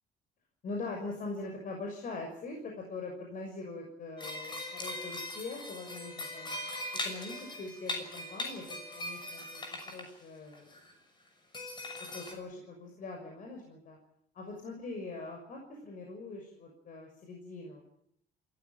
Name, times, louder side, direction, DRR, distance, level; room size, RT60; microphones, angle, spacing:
voice 1, 0.6-6.6 7.0-10.8 12.1-14.0 14.3-17.8, left 3 dB, 55° left, 2 dB, 6.3 m, -42 dB
sound 1, 4.2-10.1 10.5-10.9 11.2-11.3 11.5-12.3, left 2 dB, 25° left, 6.4 m, -40 dB
28.0 x 15.0 x 9.0 m, 0.74 s
cardioid pair, 110°, 17 cm